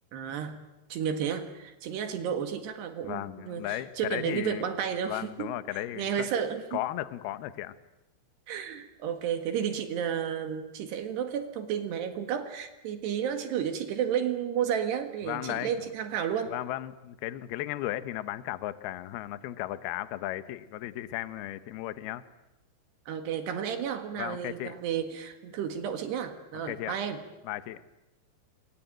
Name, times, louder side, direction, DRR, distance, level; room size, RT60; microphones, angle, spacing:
voice 1, 0.1-0.6 0.9-5.6 6.0-6.8 8.5-16.5 23.1-27.2, right 8 dB, 65° right, 7 dB, 3.7 m, -32 dB
voice 2, 3.0-4.7 5.1-6.3 6.7-7.7 15.2-15.9 16.5-22.2 24.2-24.7 26.6-26.9 27.4-27.8, left 14 dB, 70° left, 13 dB, 2.7 m, -35 dB
28.5 x 22.5 x 8.9 m, 1.0 s
omnidirectional pair, 5.3 m